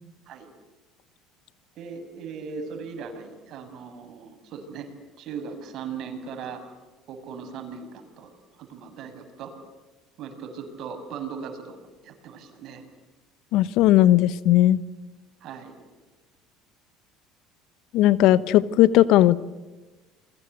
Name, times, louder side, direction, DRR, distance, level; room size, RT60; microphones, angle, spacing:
voice 1, 1.8-4.9 5.2-6.6 7.1-8.3 8.6-9.5 10.2-11.8 12.0-12.8 15.4-15.7, right 6 dB, 60° right, 6 dB, 6.7 m, -38 dB
voice 2, 13.5-14.8 17.9-19.4, left 14 dB, 65° left, 17 dB, 1.1 m, -17 dB
29.5 x 22.5 x 8.1 m, 1.2 s
hypercardioid pair, 70°, 0 cm